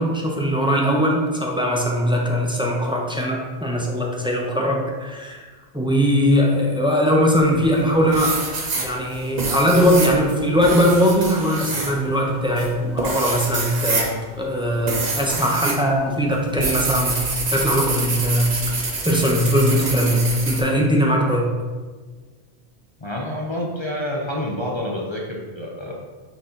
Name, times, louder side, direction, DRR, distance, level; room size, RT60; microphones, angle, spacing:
voice 1, 0.0-5.4 5.7-8.5 8.8-18.6 19.0-21.5, equal, 5° right, -2 dB, 0.7 m, -20 dB
sound 1, 7.4-7.8 8.1-15.8 16.1-20.6, right 3 dB, 45° right, 0.9 m, -26 dB
voice 2, 23.0-25.9, left 1 dB, 30° left, -3 dB, 0.6 m, -28 dB
6.0 x 4.2 x 3.8 m, 1.4 s
omnidirectional pair, 1.0 m